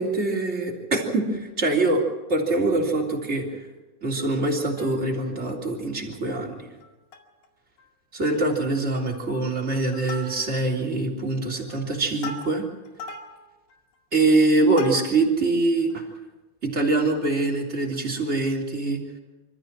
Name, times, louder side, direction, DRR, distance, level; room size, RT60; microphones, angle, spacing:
voice 1, 0.0-2.0 2.3-3.6 4.0-6.7 8.1-12.7 14.1-16.0 16.6-19.0, right 2 dB, 20° right, 0 dB, 3.1 m, -24 dB
Plucked string instrument, 4.6-5.4 5.8-5.9 6.1-6.4 6.8-7.5 7.8-7.9 8.2-8.6 9.0-9.3 9.7-10.8 11.3-15.4 15.9-16.0, left 3 dB, 85° left, 4.3 m, -41 dB
27.0 x 14.5 x 7.5 m, 1.1 s
omnidirectional pair, 4.5 m